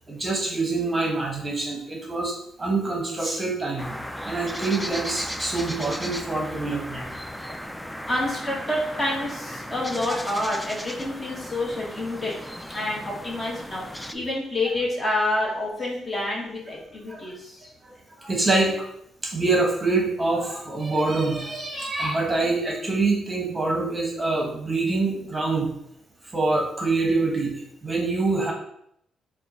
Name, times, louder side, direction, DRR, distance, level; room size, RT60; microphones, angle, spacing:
voice 1, 0.1-3.9 4.2-7.1 10.1-10.2 16.7-16.8 17.1-17.3 17.8-17.9 18.2-18.9 19.2-25.7 26.3-28.5, right 3 dB, 20° right, -1 dB, 1.0 m, -25 dB
sound 1, 3.8-14.1, equal, 5° left, 0.3 m, -36 dB
voice 2, 8.1-12.3 12.7-13.8 14.1-17.6, left 1 dB, 30° left, -3 dB, 1.3 m, -28 dB
4.2 x 2.3 x 4.1 m, 0.73 s
cardioid pair, 90°, 0 cm